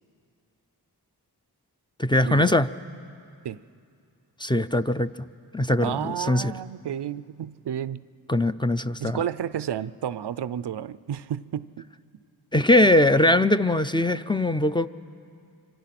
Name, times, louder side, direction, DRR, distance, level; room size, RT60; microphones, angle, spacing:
voice 1, 2.0-2.7 4.4-5.3 5.5-6.5 8.3-9.2 12.5-14.9, left 1 dB, 10° left, 10 dB, 0.5 m, -21 dB
voice 2, 5.8-8.0 9.0-11.8, right 9 dB, 85° right, 16 dB, 0.5 m, -31 dB
26.0 x 25.0 x 5.9 m, 2.5 s
cardioid pair, 40°, 40 cm